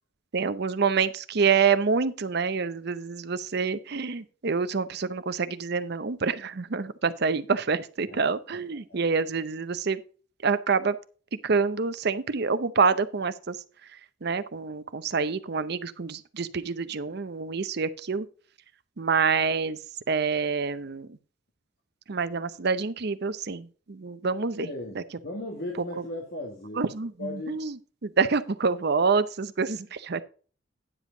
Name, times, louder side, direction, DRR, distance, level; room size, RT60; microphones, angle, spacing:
voice 1, 0.3-10.0 10.4-11.0 11.4-13.6 14.2-18.3 19.0-19.8 20.1-21.1 22.1-24.7 26.8-27.7 28.0-30.2, right 5 dB, 60° right, 0.7 m, -27 dB
voice 2, 24.6-26.9 27.2-27.6, left 1 dB, 55° left, 1.7 m, -37 dB
9.9 x 7.2 x 3.9 m
head